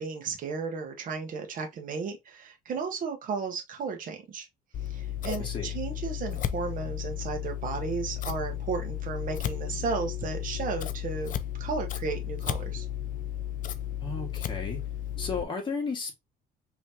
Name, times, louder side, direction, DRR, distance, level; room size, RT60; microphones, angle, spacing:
voice 1, 0.0-4.5 4.8-11.3 11.6-12.8, right 5 dB, 55° right, 1.2 m, -34 dB
Scissors, 4.7-15.4, left 11 dB, 50° left, 0.5 m, -34 dB
voice 2, 5.4-5.7 14.0-14.8 15.2-16.2, left 4 dB, 30° left, 2.0 m, -33 dB
5.4 x 3.1 x 2.9 m
cardioid pair, 110°, 17 cm